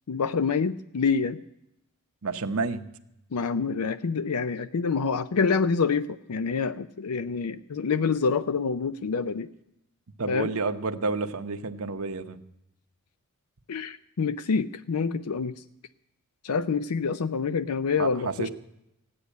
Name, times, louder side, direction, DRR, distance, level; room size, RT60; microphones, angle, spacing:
voice 1, 0.1-1.4 3.3-9.5 10.3-10.5 13.7-15.5 16.4-18.5, left 5 dB, 80° left, 12 dB, 0.5 m, -27 dB
voice 2, 2.2-2.9 10.2-12.4 18.0-18.5, right 3 dB, 70° right, 8 dB, 0.9 m, -30 dB
15.5 x 9.9 x 8.2 m, 0.83 s
head